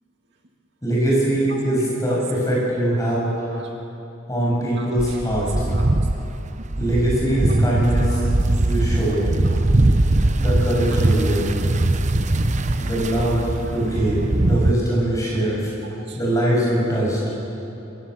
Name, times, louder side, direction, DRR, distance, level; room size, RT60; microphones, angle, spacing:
voice 1, 0.8-3.3 4.3-5.5 6.8-8.2 8.6-9.3 10.4-11.4 12.8-15.7 16.2-17.2, right 1 dB, 15° left, -5 dB, 7.9 m, -22 dB
voice 2, 1.8-2.2 3.5-3.7 4.8-5.4 5.7-5.9 7.3-7.6 7.8-8.3 9.2-9.7 11.2-11.3 11.7-11.9 14.5-14.6 15.3-15.4 15.8-16.2, right 3 dB, 55° right, 0 dB, 2.2 m, -42 dB
sound 1, 5.0-14.7, right 2 dB, 35° right, 0.8 m, -21 dB
26.5 x 18.0 x 8.3 m, 2.9 s
head